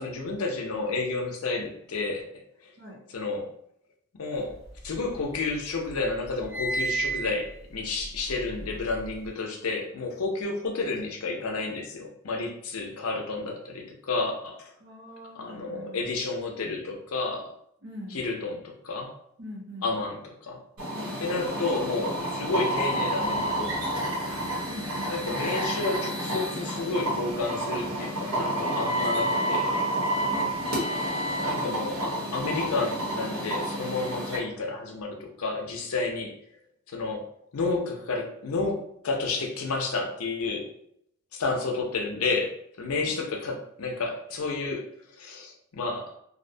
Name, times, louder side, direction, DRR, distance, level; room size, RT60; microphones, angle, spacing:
voice 1, 0.0-2.2 3.1-3.5 4.2-4.6 4.8-14.7 15.4-17.5 18.1-19.1 19.8-20.6 21.2-24.0 25.1-29.9 31.4-36.3 36.9-37.2 37.5-40.7 41.3-44.8 45.2-46.1, left 3 dB, 80° left, 2 dB, 0.5 m, -31 dB
sound 1, 4.5-5.5 5.9-9.3, right 3 dB, 10° right, 0.5 m, -34 dB
voice 2, 14.8-16.0 17.8-18.2 19.4-19.9 20.9-21.2 24.7-25.2 30.3-30.6 43.0-43.1, equal, 60° right, -3 dB, 0.7 m, -42 dB
sound 2, 20.8-34.4, right 1 dB, 80° right, 1.0 m, -29 dB
2.6 x 2.1 x 2.6 m, 0.71 s
head